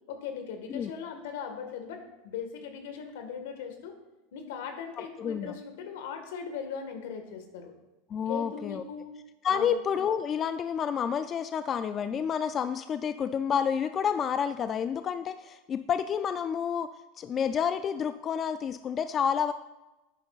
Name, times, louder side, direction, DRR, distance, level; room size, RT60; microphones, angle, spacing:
voice 1, 0.1-3.9 4.3-7.7 8.3-9.1 9.5-9.8, left 7 dB, 80° left, 6 dB, 1.6 m, -39 dB
voice 2, 5.2-5.5 8.1-8.8 9.4-16.9 17.2-19.5, left 7 dB, 30° left, 10 dB, 0.3 m, -29 dB
11.0 x 9.5 x 2.4 m, 1.0 s
supercardioid pair, 125°, 0 cm